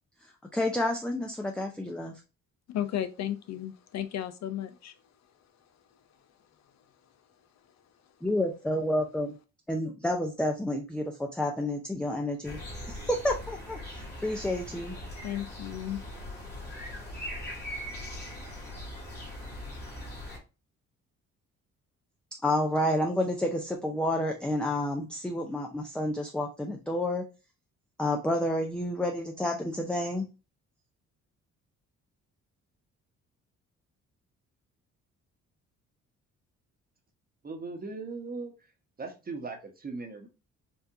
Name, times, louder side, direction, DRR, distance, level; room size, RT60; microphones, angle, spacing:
voice 1, 0.5-2.2 8.2-9.4 9.7-12.6 12.9-15.0 22.4-27.2 28.0-30.3, left 1 dB, 5° left, 0.5 m, -30 dB
voice 2, 2.7-5.0 15.2-18.7, left 11 dB, 60° left, 0.5 m, -37 dB
sound 1, 12.4-20.4, left 1 dB, 35° left, 1.7 m, -40 dB
voice 3, 37.4-38.5 39.0-40.3, right 3 dB, 30° right, 1.0 m, -38 dB
4.6 x 2.5 x 2.5 m
cardioid pair, 90°, 30 cm